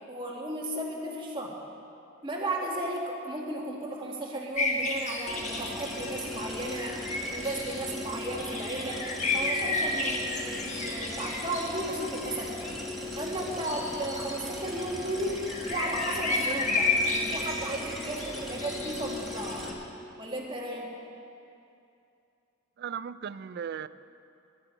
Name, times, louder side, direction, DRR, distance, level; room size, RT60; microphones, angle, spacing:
voice 1, 0.1-1.5 2.2-9.1 9.3-12.5 13.2-19.7 20.2-20.9, right 1 dB, 25° right, -2 dB, 1.7 m, -34 dB
sound 1, 4.6-19.7, left 3 dB, 35° left, 1.3 m, -33 dB
sound 2, 5.3-19.7, left 1 dB, ahead, 1.3 m, -38 dB
voice 2, 22.8-23.9, right 7 dB, 50° right, 16 dB, 0.3 m, -36 dB
12.0 x 7.6 x 8.9 m, 2.6 s
head